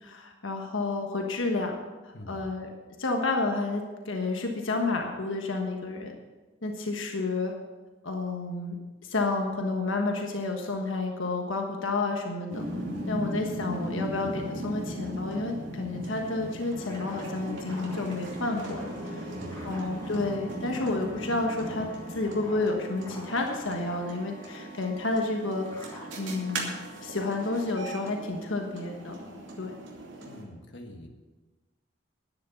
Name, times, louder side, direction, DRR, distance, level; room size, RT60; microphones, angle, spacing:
voice 1, 0.0-1.7 2.0-2.7 3.0-6.1 6.6-7.5 8.0-8.8 9.0-12.6 13.1-19.3 19.6-25.7 26.2-29.2 29.6-29.7, left 3 dB, 80° left, 2 dB, 1.4 m, -30 dB
voice 2, 2.1-2.5 19.3-19.7 30.2-31.1, left 1 dB, 65° left, 3 dB, 1.5 m, -45 dB
sound 1, 12.5-30.4, right 1 dB, 70° right, 2.7 m, -38 dB
sound 2, 16.7-27.7, equal, 15° left, 5.3 m, -46 dB
11.0 x 9.5 x 7.0 m, 1.2 s
head